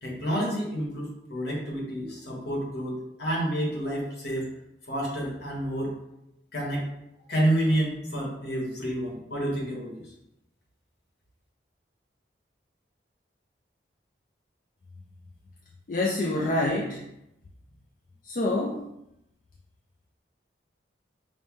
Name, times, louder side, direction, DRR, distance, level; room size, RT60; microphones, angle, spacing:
voice 1, 0.0-4.5 4.9-6.0 6.5-6.9 7.3-10.0, right 1 dB, 60° left, -2 dB, 1.1 m, -29 dB
voice 2, 15.9-17.0 18.2-18.8, left 2 dB, 45° left, -1 dB, 0.4 m, -26 dB
5.5 x 2.1 x 3.1 m, 0.84 s
head